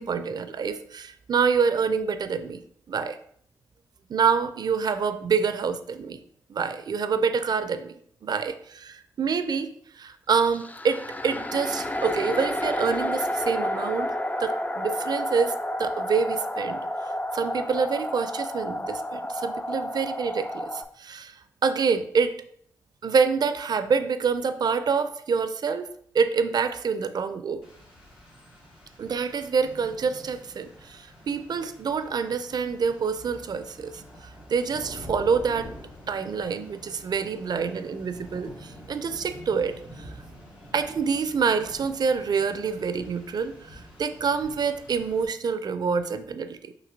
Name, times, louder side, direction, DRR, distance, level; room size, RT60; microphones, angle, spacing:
voice 1, 0.0-2.6 2.9-3.2 4.1-6.2 6.5-7.9 8.2-14.1 14.4-16.8 17.3-22.3 23.0-27.6 29.0-35.7 36.1-40.1 40.7-46.7, right 5 dB, 50° right, 10 dB, 0.4 m, -27 dB
sound 1, 10.4-20.8, left 1 dB, 20° left, 0.3 m, -30 dB
Rain, 27.6-45.3, equal, 90° left, 1.3 m, -47 dB
5.9 x 2.7 x 2.7 m, 0.65 s
supercardioid pair, 40°, 9 cm